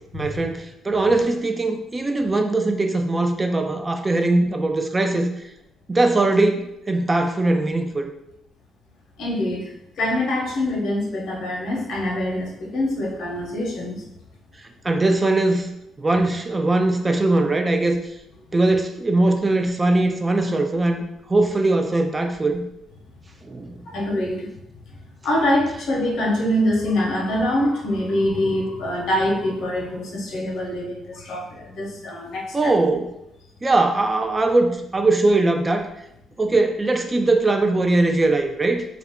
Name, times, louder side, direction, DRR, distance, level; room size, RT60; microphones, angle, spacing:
voice 1, 0.1-5.3 5.9-8.1 14.8-15.7 16.0-18.0 18.5-21.0 21.3-22.6 23.4-23.8 32.5-33.1 33.6-35.9 36.4-38.8, right 2 dB, 25° right, 5 dB, 0.3 m, -20 dB
voice 2, 9.2-14.0 23.9-24.5 25.2-32.7, left 1 dB, 75° left, -1 dB, 0.8 m, -24 dB
2.4 x 2.2 x 3.5 m, 0.81 s
cardioid pair, 90°, 0 cm